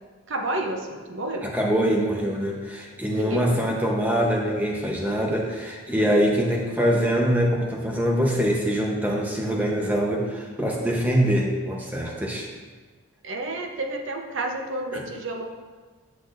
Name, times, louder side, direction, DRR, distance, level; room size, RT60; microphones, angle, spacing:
voice 1, 0.3-1.5 3.1-4.0 13.2-15.5, right 1 dB, 60° right, 3 dB, 0.7 m, -30 dB
voice 2, 1.5-12.5 14.9-15.0, equal, 10° right, -1 dB, 0.9 m, -24 dB
10.0 x 5.9 x 2.6 m, 1.4 s
head